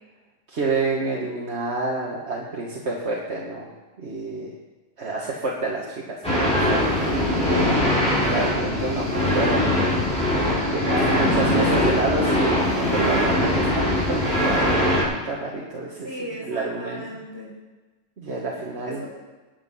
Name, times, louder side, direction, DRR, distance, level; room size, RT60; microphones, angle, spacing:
voice 1, 0.5-4.5 5.0-9.8 10.2-14.9 15.2-16.1 16.4-17.0 18.2-19.0, right 3 dB, 60° right, -3 dB, 1.7 m, -29 dB
sound 1, 6.2-15.0, left 1 dB, 5° left, 5.4 m, -21 dB
voice 2, 10.9-11.9 16.0-17.5 18.8-19.1, equal, 15° right, -4 dB, 3.6 m, -36 dB
19.5 x 7.4 x 5.6 m, 1.2 s
omnidirectional pair, 1.3 m